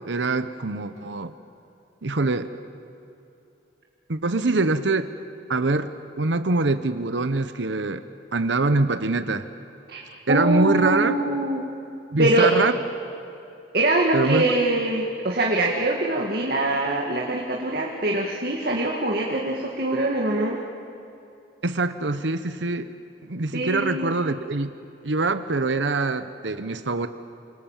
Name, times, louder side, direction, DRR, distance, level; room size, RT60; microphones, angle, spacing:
voice 1, 0.0-1.3 2.0-2.5 4.1-5.1 5.5-5.9 6.2-8.0 8.3-9.5 10.3-11.2 12.1-12.8 14.1-14.5 21.6-22.9 23.2-24.7 25.0-27.1, right 3 dB, 90° right, 10 dB, 1.0 m, -24 dB
voice 2, 10.3-11.6 12.2-12.5 13.7-20.6 23.5-24.2, right 2 dB, 60° right, -1 dB, 2.2 m, -23 dB
29.0 x 26.5 x 7.4 m, 2.7 s
head